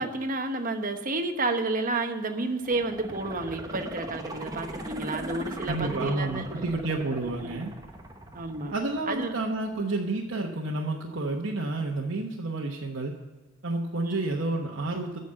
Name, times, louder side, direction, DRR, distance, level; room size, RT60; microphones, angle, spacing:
voice 1, 0.0-6.5 7.4-7.7 8.3-8.7 9.1-9.4 9.7-9.9 14.0-14.3, right 2 dB, 45° right, 6 dB, 1.1 m, -31 dB
sound 1, 2.6-9.6 10.0-10.1, right 1 dB, 20° right, 1.0 m, -40 dB
voice 2, 5.7-7.7 8.7-13.1 13.6-15.2, right 2 dB, 70° right, -2 dB, 1.1 m, -30 dB
9.3 x 6.7 x 8.6 m, 1.3 s
head